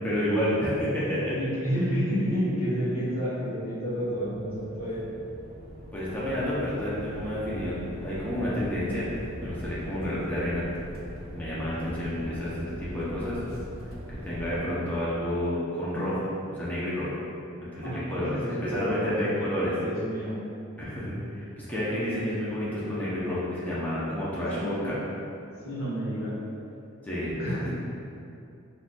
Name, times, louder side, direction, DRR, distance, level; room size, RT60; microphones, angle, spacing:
voice 1, 0.0-1.4 5.9-9.1 9.4-10.6 11.3-13.4 14.2-17.1 17.7-19.7 20.8-25.0 27.0-27.7, equal, 10° left, -9 dB, 0.5 m, -30 dB
voice 2, 1.3-5.0 17.8-19.3 19.8-20.4 24.5-24.7 25.6-26.3 27.4-27.7, equal, 80° left, -8 dB, 1.0 m, -30 dB
sound 1, 3.8-14.6, equal, 50° right, 0.5 m, -41 dB
3.8 x 2.4 x 2.2 m, 2.6 s
head